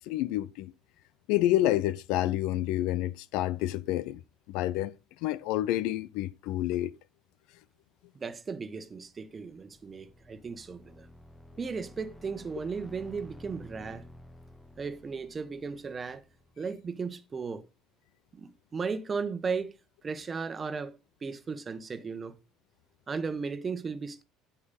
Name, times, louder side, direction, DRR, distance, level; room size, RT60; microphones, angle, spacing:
voice 1, 0.1-0.7 1.3-4.2 4.5-4.9 5.2-6.9, left 14 dB, 60° left, 0.5 m, -28 dB
voice 2, 8.1-11.1 11.6-14.1 14.8-16.2 16.6-17.6 18.3-19.7 20.0-22.4 23.1-24.2, right 5 dB, 25° right, 1.2 m, -36 dB
sound 1, 9.2-16.9, left 1 dB, 5° left, 1.1 m, -52 dB
9.7 x 8.9 x 3.9 m
figure-of-eight pair, 60°, 0 cm